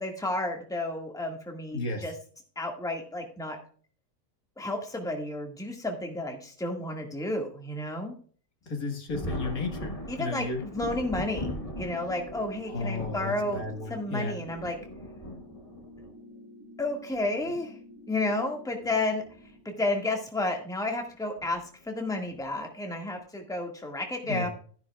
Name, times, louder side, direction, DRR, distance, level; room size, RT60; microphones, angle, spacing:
voice 1, 0.0-2.1 2.5-3.6 4.6-8.1 10.1-11.5 11.8-14.8 16.8-17.7 18.1-19.2 19.6-24.5, left 2 dB, ahead, 2 dB, 1.7 m, -31 dB
voice 2, 1.7-2.0 8.7-10.6 12.7-14.4 24.2-24.5, left 3 dB, 65° left, 4 dB, 2.1 m, -33 dB
Thunder, 9.1-16.1 17.1-17.2 18.7-19.0 19.3-19.4 21.4-21.6 22.3-22.6, left 1 dB, 25° left, 1.3 m, -39 dB
sound 1, 10.9-19.6, right 1 dB, 55° right, 4.5 m, -49 dB
13.5 x 10.5 x 2.3 m, 0.44 s
omnidirectional pair, 1.6 m